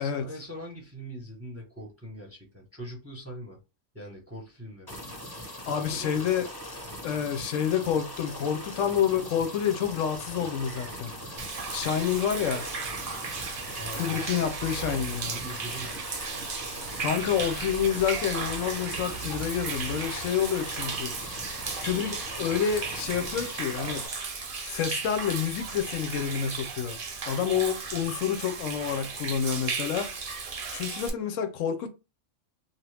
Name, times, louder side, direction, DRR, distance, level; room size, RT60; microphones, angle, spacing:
voice 1, 0.0-3.6 3.9-5.2 5.7-6.3 13.7-14.4 15.2-16.0 27.5-27.7, equal, 15° right, 0.8 m, -42 dB
sound 1, 4.9-24.1, left 1 dB, 20° left, 0.8 m, -41 dB
voice 2, 5.7-6.5 7.0-11.1 11.7-12.7 13.9-15.4 16.8-21.1 21.5-24.2 24.6-27.0 27.3-30.3 30.7-31.9, left 8 dB, 75° left, 0.9 m, -28 dB
Bird vocalization bird call bird song, 10.0-23.3, right 6 dB, 90° right, 1.0 m, -47 dB
Human voice / Rain / Stream, 11.4-31.1, right 5 dB, 50° right, 0.8 m, -36 dB
2.8 x 2.3 x 3.2 m
omnidirectional pair, 1.4 m